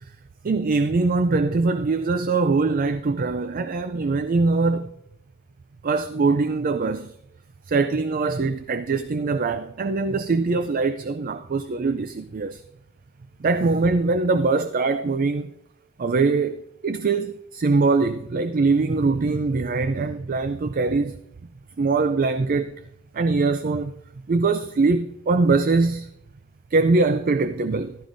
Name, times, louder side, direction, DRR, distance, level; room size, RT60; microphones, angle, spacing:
voice 1, 0.4-4.9 5.8-7.1 7.7-12.6 13.4-15.5 16.0-21.2 21.8-22.8 23.1-23.9 24.3-26.1 26.7-28.0, right 3 dB, 40° right, 0.4 m, -22 dB
14.5 x 12.5 x 2.6 m
head